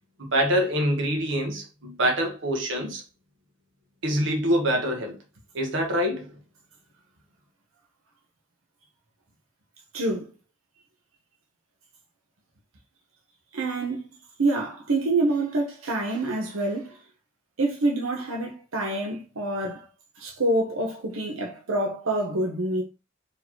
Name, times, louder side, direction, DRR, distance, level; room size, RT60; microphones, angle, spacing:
voice 1, 0.2-3.0 4.0-5.2 5.5-6.3, equal, 60° right, 1.1 m, -25 dB
voice 2, 9.9-10.3 13.5-14.1 14.4-17.0 17.6-19.9 20.2-22.8, right 2 dB, 85° right, 0.9 m, -26 dB
4.1 x 3.1 x 2.9 m
head